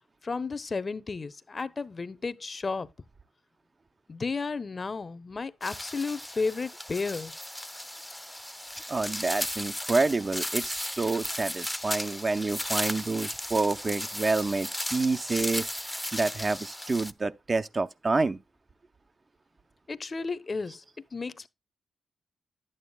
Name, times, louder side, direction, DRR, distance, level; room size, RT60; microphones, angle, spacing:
voice 1, 0.2-2.9 4.1-7.3 19.9-20.8 21.1-21.5, left 4 dB, 45° left, 0.7 m, -33 dB
sound 1, 5.6-17.1, left 1 dB, 5° left, 0.6 m, -35 dB
voice 2, 8.9-15.7 16.1-18.4, right 3 dB, 40° right, 0.7 m, -28 dB
11.0 x 8.8 x 2.3 m
supercardioid pair, 45°, 0 cm